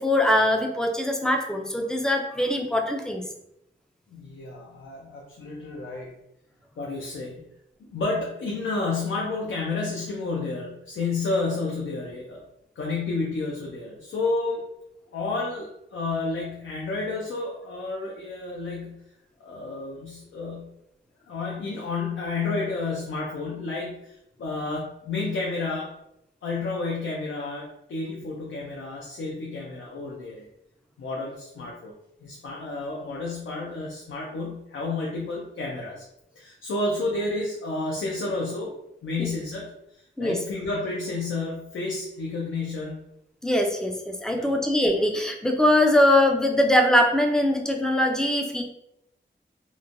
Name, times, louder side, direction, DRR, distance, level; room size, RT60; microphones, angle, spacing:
voice 1, 0.0-3.2 39.2-39.3 40.2-40.4 43.4-48.6, left 1 dB, 5° left, 3 dB, 0.3 m, -22 dB
voice 2, 4.1-6.1 6.8-7.4 7.8-12.4 12.8-14.6 15.1-19.0 19.4-20.7 21.2-25.9 26.4-30.5 31.0-31.9 32.2-36.0 36.3-38.7 39.0-43.0 44.3-44.5, left 3 dB, 85° left, -3 dB, 0.5 m, -31 dB
3.0 x 2.1 x 2.5 m, 0.81 s
wide cardioid pair, 135°, 20 cm